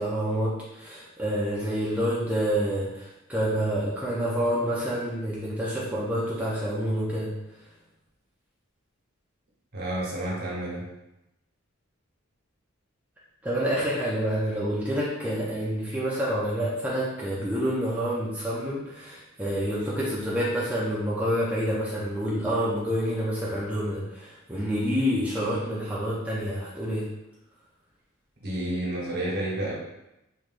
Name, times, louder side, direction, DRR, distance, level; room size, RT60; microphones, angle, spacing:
voice 1, 0.0-7.7 13.4-27.1, equal, 5° right, -7 dB, 0.5 m, -28 dB
voice 2, 9.7-10.9 28.4-29.7, right 1 dB, 50° right, -5 dB, 1.0 m, -30 dB
3.5 x 3.0 x 2.5 m, 0.91 s
head